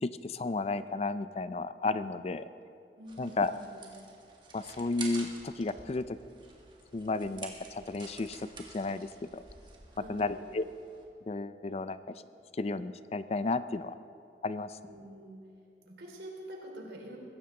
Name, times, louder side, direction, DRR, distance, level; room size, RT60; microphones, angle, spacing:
voice 1, 0.0-2.5 3.2-3.5 4.5-6.2 6.9-8.5 8.7-9.4 10.1-10.6 11.3-12.2 12.5-13.9 14.4-14.8, left 3 dB, 35° left, 13 dB, 0.4 m, -33 dB
voice 2, 3.0-3.9 9.9-10.5 14.8-15.4 15.8-17.2, right 1 dB, 75° right, 0 dB, 3.5 m, -46 dB
sound 1, 3.1-11.0, right 4 dB, 25° right, 1.7 m, -49 dB
21.5 x 15.5 x 3.8 m, 2.6 s
head